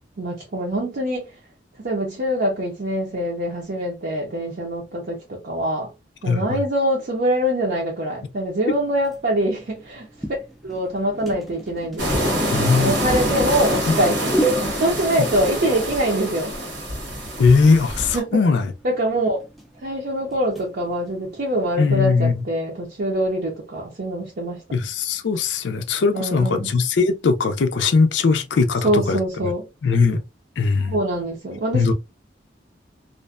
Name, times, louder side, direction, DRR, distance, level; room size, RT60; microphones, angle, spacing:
voice 1, 0.2-1.3 1.8-5.9 6.2-10.1 10.6-12.4 12.8-16.5 18.1-18.4 18.8-19.4 19.8-24.6 26.1-26.7 28.8-29.6 30.8-31.9, right 1 dB, 55° right, 0.6 m, -24 dB
voice 2, 6.2-6.6 12.5-12.9 13.9-14.0 17.4-18.7 21.8-22.4 24.7-29.5 29.8-30.2 30.6-31.0 31.7-31.9, left 4 dB, 85° left, 0.4 m, -19 dB
sound 1, 8.7-22.4, right 2 dB, ahead, 0.4 m, -35 dB
sound 2, 12.0-18.2, equal, 85° right, 1.0 m, -25 dB
2.5 x 2.1 x 2.3 m
head